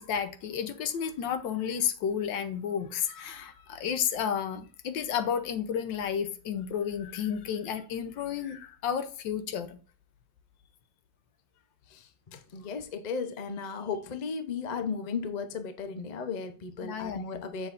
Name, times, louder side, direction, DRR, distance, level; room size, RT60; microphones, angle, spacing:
voice 1, 0.0-9.8 16.8-17.4, left 8 dB, 85° left, 1.5 m, -32 dB
voice 2, 11.9-17.7, left 5 dB, 50° left, 0.5 m, -35 dB
7.4 x 6.4 x 2.5 m
omnidirectional pair, 2.0 m